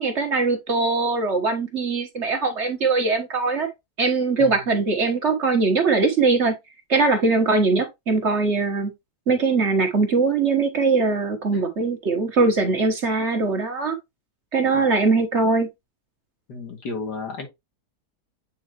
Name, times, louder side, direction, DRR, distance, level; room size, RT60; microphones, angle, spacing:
voice 1, 0.0-3.7 4.0-6.5 6.9-8.9 9.3-14.0 14.5-15.7, right 3 dB, 45° right, 1.5 m, -21 dB
voice 2, 16.5-17.5, left 3 dB, 80° left, 2.5 m, -33 dB
8.4 x 4.0 x 3.0 m
omnidirectional pair, 1.8 m